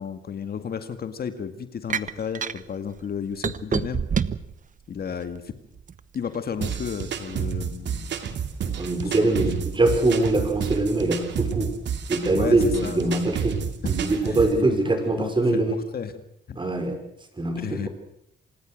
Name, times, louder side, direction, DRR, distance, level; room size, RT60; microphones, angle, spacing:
voice 1, 0.0-4.1 4.9-5.5 6.1-8.1 9.0-9.3 12.3-13.0 13.3-13.4 14.2-15.6 15.9-16.1 16.5-16.6 17.6-17.9, left 7 dB, 50° left, 9 dB, 1.9 m, -33 dB
sound 1, 1.9-2.6 3.4-4.5 5.1-6.0, right 7 dB, 40° right, 1.0 m, -26 dB
sound 2, 6.6-14.6, right 7 dB, 65° right, 2.5 m, -30 dB
voice 2, 8.8-11.7 12.1-13.5 13.8-15.8 16.6-17.0 17.4-17.9, right 2 dB, 25° right, 6 dB, 5.6 m, -23 dB
27.0 x 19.0 x 6.4 m, 0.77 s
cardioid pair, 90°, 20 cm